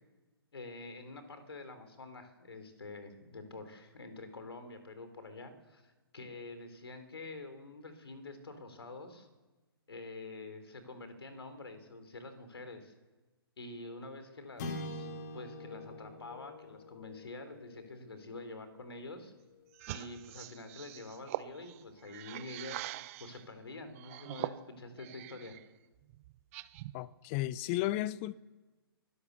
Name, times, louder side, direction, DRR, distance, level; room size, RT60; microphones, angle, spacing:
voice 1, 0.5-9.3 9.9-12.9 13.6-15.1 15.3-19.3 19.9-25.6, left 2 dB, 75° left, 4.2 m, -47 dB
sound 1, 14.6-19.1, left 2 dB, 45° left, 3.5 m, -45 dB
sound 2, 19.7-23.4 23.9-25.6 26.0-27.0, right 17 dB, 35° right, 0.8 m, -43 dB
voice 2, 26.9-28.3, left 15 dB, 30° left, 0.8 m, -33 dB
25.5 x 16.5 x 7.0 m
figure-of-eight pair, 130°, 13 cm